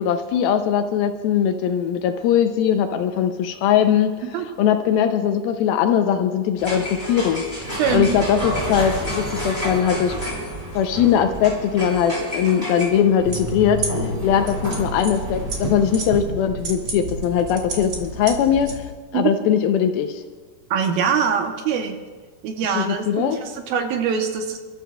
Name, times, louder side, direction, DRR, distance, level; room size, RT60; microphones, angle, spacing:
voice 1, 0.0-4.1 4.6-10.2 10.7-18.9 19.1-20.2 22.8-23.4, left 8 dB, 80° left, 7 dB, 2.3 m, -20 dB
sound 1, 6.6-16.2, equal, 10° right, 3.6 m, -30 dB
voice 2, 7.8-8.1 19.1-19.3 20.7-22.0 22.4-24.6, right 7 dB, 75° right, 5 dB, 2.4 m, -23 dB
sound 2, 13.3-18.8, right 1 dB, 50° right, 1.4 m, -30 dB
29.5 x 13.5 x 2.2 m, 1.4 s
omnidirectional pair, 4.7 m